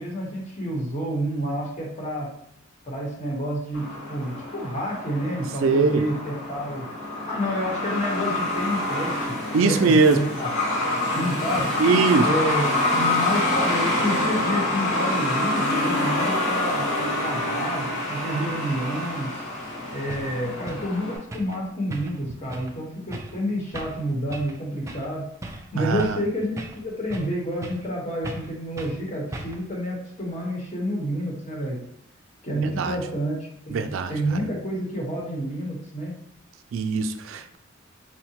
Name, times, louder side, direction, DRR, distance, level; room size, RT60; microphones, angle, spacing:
voice 1, 0.0-2.4 2.9-6.9 7.3-9.4 9.6-11.7 12.2-19.3 19.9-25.3 25.7-31.8 32.4-36.1, equal, 35° left, -2 dB, 1.0 m, -29 dB
Truck, 3.7-21.2, left 2 dB, 80° left, 1.0 m, -27 dB
voice 2, 5.6-6.0 9.5-10.2 11.8-12.3 25.8-26.0 32.8-32.9 33.7-34.1 36.7-37.6, right 4 dB, 90° right, 8 dB, 0.4 m, -20 dB
sound 1, 19.6-19.7 20.1-20.3 20.7-20.9 21.3-21.6 21.9-22.2 22.5-22.7 23.1-23.4 23.7-24.0 24.3-24.6 24.9-25.1 25.4-26.2 26.6-27.3 27.6-27.9 28.2-28.5 28.8-29.0 29.3-29.7, right 1 dB, 15° right, 0.3 m, -37 dB
4.6 x 2.1 x 2.8 m, 0.69 s
head